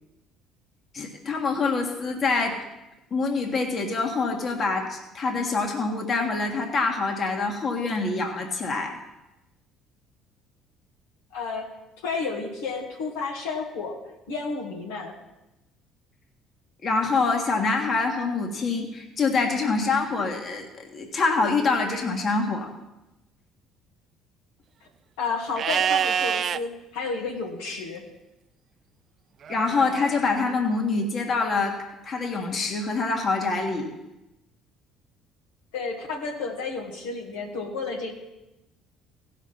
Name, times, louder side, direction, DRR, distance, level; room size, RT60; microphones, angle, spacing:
voice 1, 0.9-2.6 3.1-9.0 16.8-20.7 20.9-22.7 29.5-31.7 32.0-33.9, left 4 dB, 45° left, 2 dB, 1.7 m, -25 dB
voice 2, 11.3-11.7 12.0-14.0 14.3-15.2 24.8-24.9 25.2-28.0 35.7-38.1, left 4 dB, 85° left, -1 dB, 1.9 m, -31 dB
Livestock farm animals working animals, 25.6-26.6 29.4-30.4, right 8 dB, 50° right, 0.3 m, -26 dB
16.0 x 6.0 x 5.8 m, 0.96 s
hypercardioid pair, 70°, 0 cm